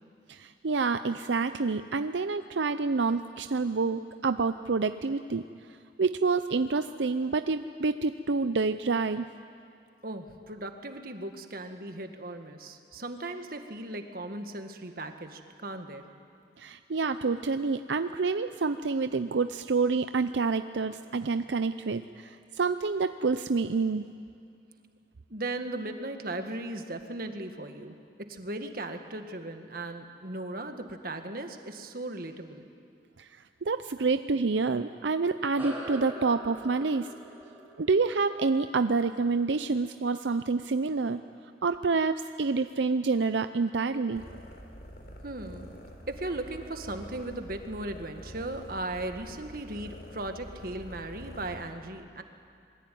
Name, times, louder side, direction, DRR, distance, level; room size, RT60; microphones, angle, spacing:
voice 1, 0.3-5.4 6.0-9.2 16.6-24.1 33.2-33.3 33.6-37.1 37.8-41.2 41.6-44.2, right 4 dB, 85° right, 10 dB, 0.6 m, -28 dB
voice 2, 10.0-16.0 25.3-28.0 28.3-32.6 45.2-45.7 46.1-52.2, right 2 dB, 55° right, 6 dB, 1.8 m, -37 dB
sound 1, 35.6-40.4, right 1 dB, 10° right, 5.1 m, -44 dB
sound 2, 44.1-51.7, equal, 55° left, 3.8 m, -46 dB
26.5 x 21.5 x 9.3 m, 2.4 s
head